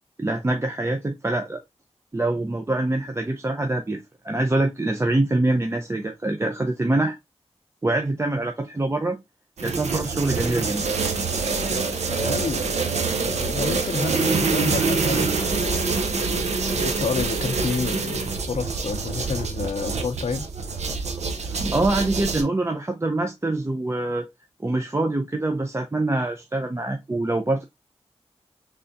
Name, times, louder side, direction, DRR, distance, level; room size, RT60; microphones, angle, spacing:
voice 1, 0.2-1.6 2.1-7.2 7.8-9.2 9.6-10.8 21.4-24.3 24.6-27.6, right 2 dB, 25° right, 0.5 m, -25 dB
sound 1, 9.6-22.4, right 4 dB, 85° right, 0.6 m, -25 dB
voice 2, 12.1-12.7 13.1-15.9 16.7-20.5, left 5 dB, 75° left, 0.5 m, -30 dB
3.5 x 3.3 x 2.6 m
wide cardioid pair, 65°, 11 cm